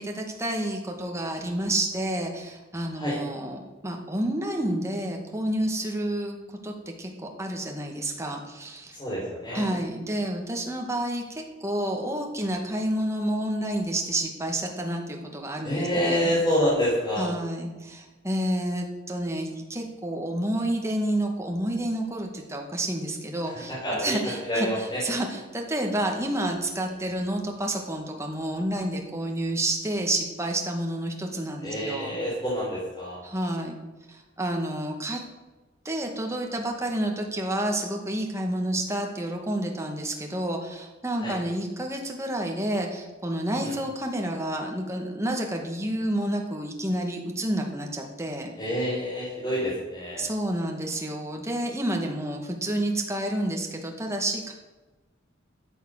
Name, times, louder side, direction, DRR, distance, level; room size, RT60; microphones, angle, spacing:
voice 1, 0.0-6.4 6.6-9.0 9.5-16.3 17.2-23.7 24.0-24.7 25.0-32.1 33.2-33.8 34.4-35.2 35.9-48.5 50.2-54.5, right 1 dB, 15° right, 1 dB, 2.0 m, -29 dB
voice 2, 8.9-9.7 15.6-17.3 23.4-25.0 31.6-33.2 41.1-41.4 43.6-43.7 48.6-50.2, equal, 20° left, -8 dB, 4.2 m, -28 dB
13.5 x 8.3 x 6.6 m, 1.2 s
head